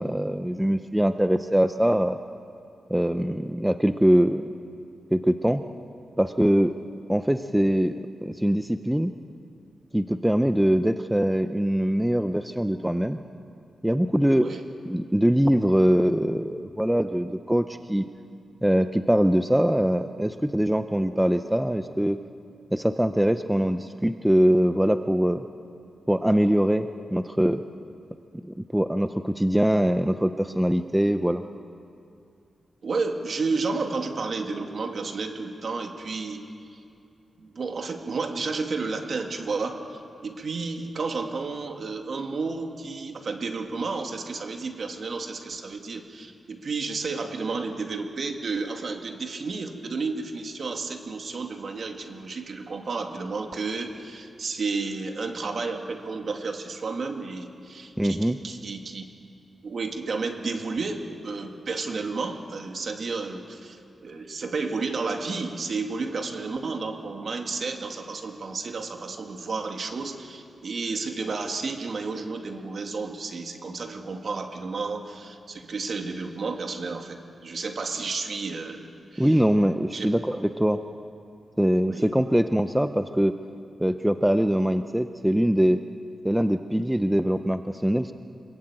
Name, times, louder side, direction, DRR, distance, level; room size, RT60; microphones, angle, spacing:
voice 1, 0.0-2.2 2.9-4.5 5.1-5.6 6.2-6.8 7.1-9.1 9.9-13.2 13.8-14.5 14.8-18.1 18.6-22.2 22.7-25.4 26.1-27.6 28.5-31.4 58.0-58.4 79.2-80.8 81.6-83.3 83.8-85.8 86.2-88.1, equal, 5° right, 9 dB, 0.6 m, -23 dB
voice 2, 14.3-14.6 32.8-36.4 36.7-36.8 37.4-59.0 59.6-79.4 79.9-80.1 80.7-80.8 81.8-82.1, right 4 dB, 50° right, 4 dB, 2.4 m, -32 dB
26.0 x 22.5 x 8.9 m, 2.5 s
wide cardioid pair, 140°, 0 cm